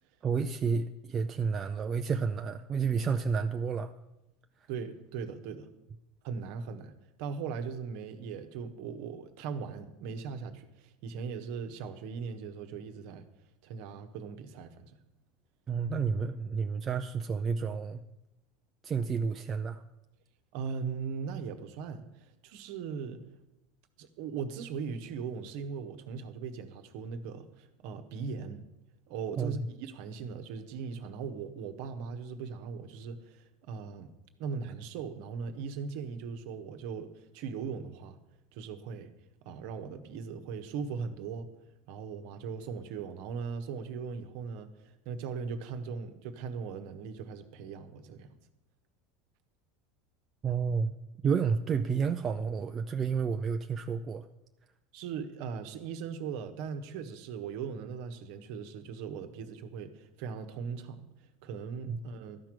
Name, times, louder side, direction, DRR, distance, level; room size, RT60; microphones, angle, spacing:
voice 1, 0.2-3.9 15.7-18.0 18.8-19.8 29.4-29.6 50.4-51.0 51.2-54.3 61.9-62.0, right 6 dB, 30° right, 0.5 m, -30 dB
voice 2, 4.7-5.7 6.2-13.3 13.6-14.9 20.5-23.2 24.0-28.7 29.1-34.1 34.4-38.2 38.5-39.1 39.4-41.5 41.9-48.3 54.9-61.0 61.4-62.4, right 6 dB, 55° right, 1.2 m, -39 dB
13.0 x 6.0 x 8.8 m
figure-of-eight pair, 75°, 0 cm